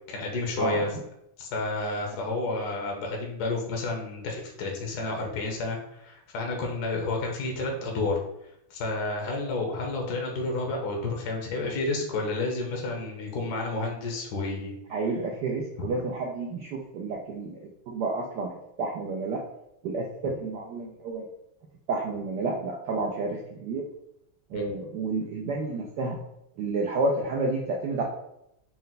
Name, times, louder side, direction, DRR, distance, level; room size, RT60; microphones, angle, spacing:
voice 1, 0.1-0.9 1.4-8.2 8.7-14.7 24.5-24.6, left 2 dB, 65° left, 1 dB, 1.0 m, -30 dB
voice 2, 0.6-0.9 14.9-17.6 17.9-19.4 19.8-21.2 21.9-23.9 24.5-26.2 26.6-28.0, right 3 dB, 80° right, -1 dB, 0.9 m, -30 dB
4.3 x 2.2 x 3.9 m, 0.80 s
omnidirectional pair, 2.4 m